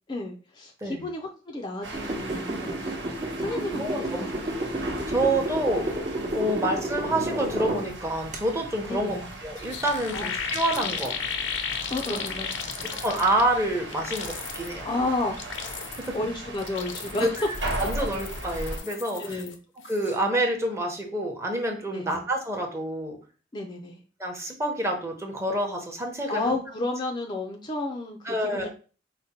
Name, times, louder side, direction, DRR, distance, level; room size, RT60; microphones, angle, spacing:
voice 1, 0.1-3.0 3.4-4.3 6.4-6.6 8.9-9.3 10.1-10.3 10.8-10.9 11.9-13.0 14.8-15.8 16.1-17.3 19.2-19.6 21.9-22.2 23.5-24.0 26.3-28.7, left 2 dB, 25° left, 2 dB, 0.5 m, -32 dB
sound 1, 1.8-18.8, right 2 dB, 85° right, 1.5 m, -38 dB
sound 2, 1.9-7.9 8.3-8.4, right 1 dB, 40° right, 1.0 m, -31 dB
voice 2, 3.4-4.3 4.6-6.0 6.3-9.2 9.4-11.1 12.1-12.2 12.8-14.9 16.0-16.2 17.2-19.4 19.8-23.2 24.2-26.6 28.2-28.7, right 1 dB, 15° right, 2 dB, 0.9 m, -28 dB
sound 3, 9.3-9.4 9.6-13.6 13.9-14.7 15.2-16.2 16.5-19.5 19.8-20.2, left 7 dB, 85° left, 0.6 m, -35 dB
5.0 x 2.1 x 4.2 m, 0.37 s
head